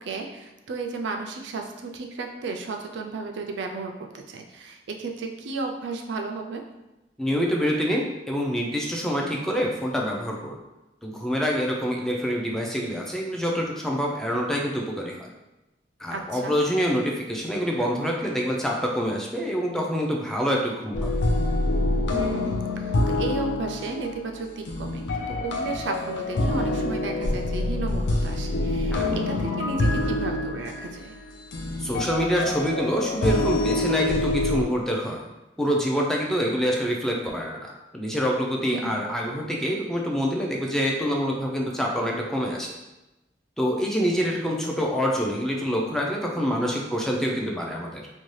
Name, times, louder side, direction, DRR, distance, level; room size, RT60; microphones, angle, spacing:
voice 1, 0.0-6.6 16.1-16.5 22.1-31.1 38.7-39.0, right 3 dB, 75° right, 4 dB, 0.4 m, -34 dB
voice 2, 7.2-10.6 11.0-15.3 16.0-21.2 28.9-29.2 31.8-35.2 35.6-42.7 43.6-48.1, equal, 5° left, -1 dB, 0.3 m, -26 dB
sound 1, 20.9-34.6, left 2 dB, 75° left, 0.4 m, -26 dB
2.6 x 2.2 x 3.1 m, 1.0 s
head